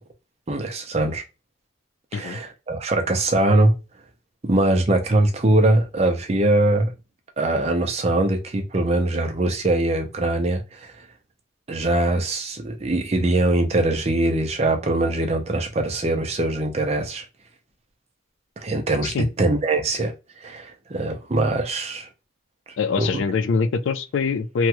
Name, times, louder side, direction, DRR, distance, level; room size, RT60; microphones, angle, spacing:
voice 1, 0.5-1.2 2.1-3.7 4.4-6.9 7.4-11.1 11.7-17.2 18.6-22.1 23.0-23.2, right 2 dB, 30° right, 0.5 m, -22 dB
voice 2, 22.8-24.7, left 4 dB, 70° left, 0.4 m, -23 dB
3.0 x 2.3 x 2.9 m
head